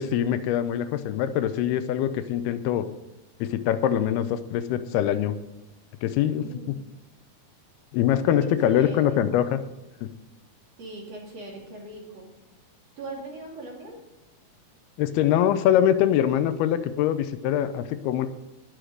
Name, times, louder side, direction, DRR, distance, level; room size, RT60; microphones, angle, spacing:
voice 1, 0.0-2.9 3.4-5.3 6.0-6.4 7.9-9.6 10.0-10.1 15.0-18.3, left 10 dB, 90° left, 11 dB, 2.7 m, -23 dB
voice 2, 6.2-6.7 8.4-9.3 10.8-12.3 13.0-14.0, right 2 dB, 45° right, -1 dB, 3.5 m, -40 dB
19.5 x 6.5 x 5.0 m, 0.96 s
omnidirectional pair, 4.4 m